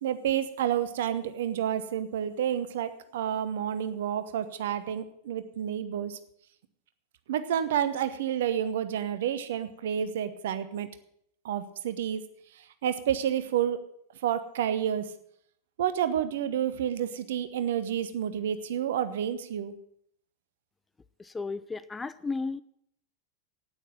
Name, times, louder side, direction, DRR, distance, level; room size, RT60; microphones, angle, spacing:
voice 1, 0.0-6.2 7.3-10.9 11.4-12.2 12.8-13.8 14.2-15.1 15.8-19.7, right 9 dB, 55° right, 12 dB, 0.9 m, -29 dB
voice 2, 21.2-22.6, left 4 dB, 15° left, 15 dB, 0.4 m, -34 dB
9.2 x 9.0 x 7.2 m, 0.69 s
figure-of-eight pair, 90°, 0 cm